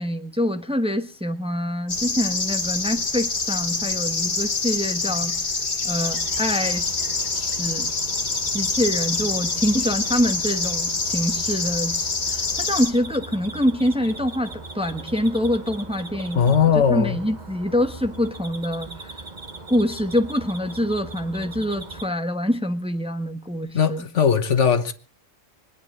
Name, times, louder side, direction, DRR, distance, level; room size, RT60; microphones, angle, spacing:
voice 1, 0.0-5.3 5.8-6.9 7.6-7.9 8.5-16.5 16.9-19.1 19.7-24.0, equal, 5° right, 1.1 m, -25 dB
sound 1, 1.9-12.9, left 4 dB, 45° left, 1.7 m, -26 dB
sound 2, 6.0-22.1, right 3 dB, 35° right, 1.5 m, -39 dB
voice 2, 16.3-17.2 23.7-24.9, left 7 dB, 70° left, 1.5 m, -19 dB
22.0 x 9.7 x 6.6 m
omnidirectional pair, 1.3 m